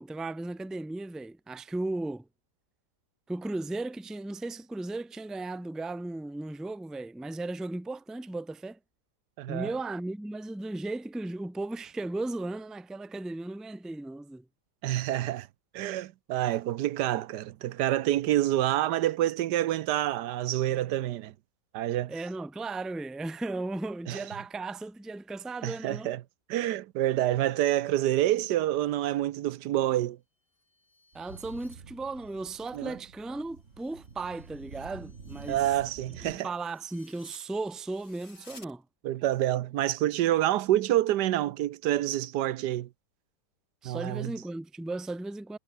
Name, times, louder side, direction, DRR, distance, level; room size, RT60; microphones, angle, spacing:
voice 1, 0.0-2.2 3.3-8.8 9.5-14.4 22.1-26.1 31.1-35.7 36.2-38.8 43.8-45.6, right 2 dB, ahead, 0.6 m, -36 dB
voice 2, 9.4-9.7 14.8-15.5 15.7-21.3 21.7-22.1 24.1-24.2 25.6-26.2 26.5-30.2 32.7-33.0 35.5-36.5 39.0-42.9 43.8-44.3, right 13 dB, 80° right, 1.3 m, -27 dB
sound 1, 30.4-32.8 33.2-38.7, left 2 dB, 80° left, 7.8 m, -58 dB
sound 2, 31.1-36.4, right 5 dB, 45° right, 2.1 m, -48 dB
omnidirectional pair, 1.8 m